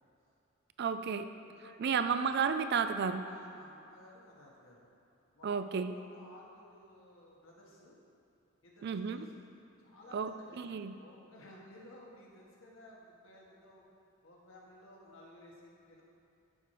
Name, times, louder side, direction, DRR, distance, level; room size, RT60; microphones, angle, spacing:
voice 1, 0.8-1.3 1.8-3.2 5.4-5.9 8.8-9.3 10.1-10.9, right 6 dB, 50° right, 10 dB, 0.4 m, -32 dB
voice 2, 1.4-2.1 3.2-4.9 5.3-8.0 8.6-9.3 9.8-13.9 14.2-16.0, left 1 dB, 65° left, -3 dB, 1.6 m, -56 dB
12.0 x 4.5 x 4.8 m, 2.8 s
head